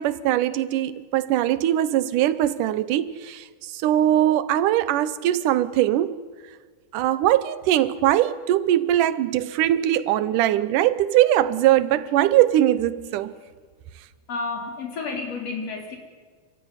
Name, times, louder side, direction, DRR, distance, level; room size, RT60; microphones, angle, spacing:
voice 1, 0.0-6.2 6.9-13.3, right 12 dB, 85° right, 2.4 m, -21 dB
voice 2, 14.3-16.0, left 4 dB, 50° left, 4.6 m, -31 dB
27.5 x 15.5 x 9.8 m
omnidirectional pair, 3.6 m